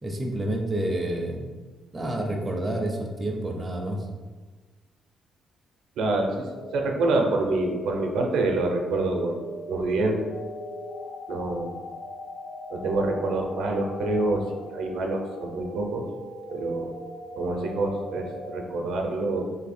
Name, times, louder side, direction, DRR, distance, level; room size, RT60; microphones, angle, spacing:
voice 1, 0.0-1.5 1.9-4.1, right 1 dB, 15° right, 1 dB, 0.5 m, -29 dB
voice 2, 6.0-6.5 6.7-9.4 9.7-10.3 11.3-11.7 12.7-16.0 16.5-16.9 17.4-19.4, right 2 dB, 80° right, 3 dB, 0.5 m, -26 dB
sound 1, 6.4-18.7, equal, 75° left, 0.5 m, -39 dB
2.8 x 2.6 x 4.1 m, 1.3 s
cardioid pair, 135°, 0 cm